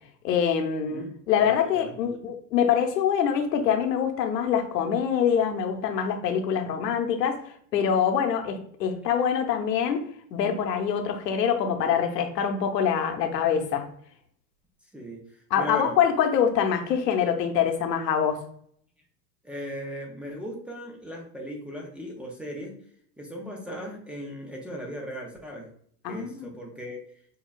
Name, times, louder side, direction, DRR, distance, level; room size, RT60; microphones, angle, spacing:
voice 1, 0.2-7.4 7.7-10.0 10.3-13.9 15.5-18.4 26.0-26.5, left 8 dB, 80° left, 5 dB, 0.9 m, -25 dB
voice 2, 1.4-2.2 14.9-15.2 15.6-16.0 19.4-22.7 23.2-25.7 26.1-27.0, equal, 5° right, -1 dB, 0.3 m, -37 dB
6.6 x 2.3 x 2.2 m, 0.63 s
hypercardioid pair, 100°, 49 cm